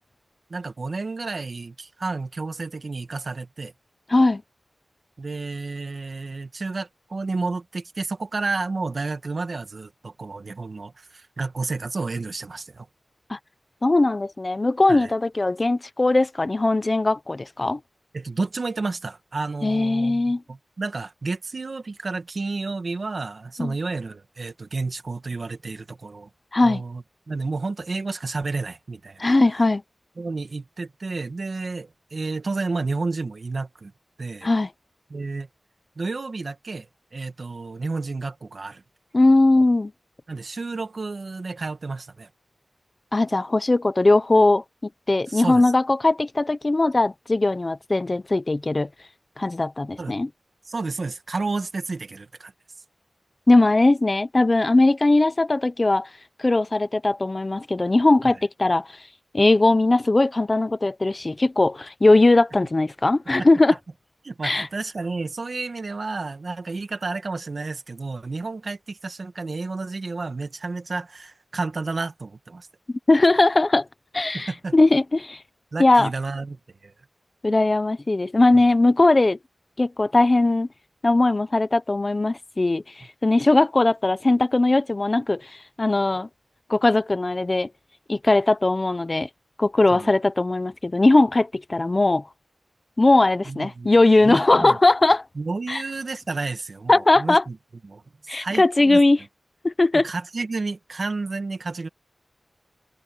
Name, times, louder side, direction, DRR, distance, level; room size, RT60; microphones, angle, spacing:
voice 1, 0.5-3.7 5.2-12.9 14.9-15.1 18.1-26.3 26.6-29.3 30.2-33.9 34.2-34.5 35.1-35.5 36.0-38.8 40.3-42.3 45.3-45.7 50.0-50.2 50.6-52.5 58.2-58.4 63.4-63.5 64.2-72.7 74.3-74.7 75.7-76.9 78.5-78.6 89.9-90.1 93.4-93.9 94.2-94.8 95.4-97.6 97.8-99.0 99.9-101.9, right 3 dB, 70° right, 1.9 m, -31 dB
voice 2, 4.1-4.4 13.3-13.4 13.8-17.8 19.6-20.4 23.6-23.7 26.5-26.8 29.2-29.8 34.4-34.7 39.1-39.9 43.1-44.6 45.1-48.9 49.4-50.3 53.5-56.1 56.4-58.8 59.3-63.7 64.4-64.7 73.1-73.9 74.1-75.4 75.8-76.1 77.4-79.4 79.8-80.7 81.0-82.8 83.2-85.4 85.8-86.3 86.7-87.7 88.1-89.3 89.6-92.2 93.0-95.2 95.7-95.8 96.9-97.4 98.3-99.2 99.6-100.1, left 2 dB, 45° left, 1.0 m, -19 dB
cardioid pair, 50°, 0 cm